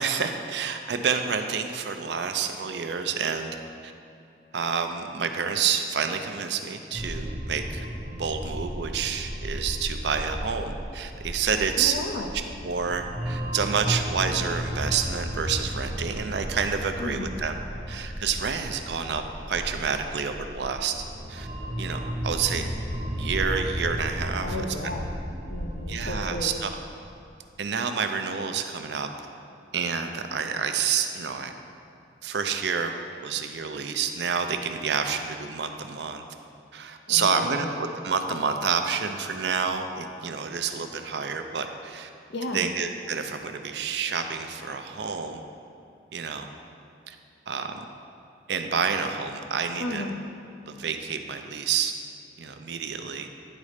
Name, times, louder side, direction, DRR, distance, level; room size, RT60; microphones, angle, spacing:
voice 1, 0.0-3.6 3.8-3.9 4.5-7.8 8.1-11.9 12.6-17.5 17.9-19.2 19.5-20.9 21.3-21.5 21.8-22.7 23.2-24.6 25.9-26.8 27.6-29.1 29.7-31.5 32.2-32.9 33.2-36.2 36.7-42.1 42.5-45.4 46.1-46.5 47.1-47.2 47.5-47.8 48.5-50.1 50.7-51.9 52.4-53.3, right 6 dB, 70° right, 7 dB, 0.5 m, -28 dB
sound 1, 6.9-26.5, equal, 35° right, 0.9 m, -34 dB
voice 2, 11.8-12.3 17.0-17.4 24.4-25.1 25.5-26.6 37.1-37.7 42.3-42.7 49.8-50.2, left 2 dB, 65° left, 4 dB, 0.6 m, -33 dB
9.9 x 4.1 x 5.0 m, 2.7 s
head